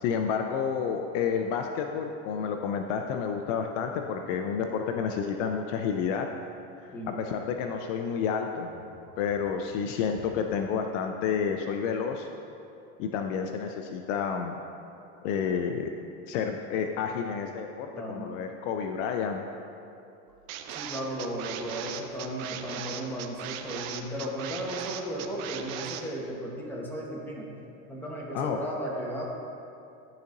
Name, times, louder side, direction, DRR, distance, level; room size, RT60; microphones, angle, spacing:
voice 1, 0.0-6.3 7.1-8.7 9.2-12.3 13.0-14.6 15.2-15.9 16.3-19.4 28.3-28.6, left 6 dB, 60° left, 4 dB, 0.5 m, -30 dB
voice 2, 17.9-18.4 20.7-27.5 27.9-29.2, equal, 5° left, -4 dB, 1.2 m, -35 dB
sound 1, 20.5-26.0, right 9 dB, 65° right, 0.7 m, -38 dB
12.5 x 4.1 x 2.6 m, 2.7 s
supercardioid pair, 115°, 43 cm